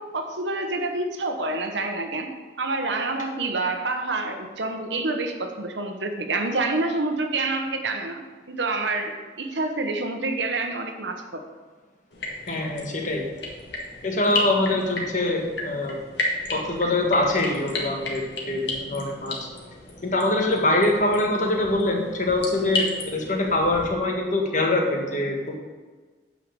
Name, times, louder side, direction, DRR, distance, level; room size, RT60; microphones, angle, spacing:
voice 1, 0.0-11.4, right 2 dB, 80° right, 5 dB, 1.1 m, -28 dB
sound 1, 12.1-23.9, left 2 dB, 70° left, 1.9 m, -33 dB
voice 2, 12.5-13.3 14.0-15.9 16.5-19.5 20.0-25.6, left 2 dB, 45° left, 1 dB, 1.5 m, -24 dB
9.2 x 4.8 x 7.0 m, 1.4 s
head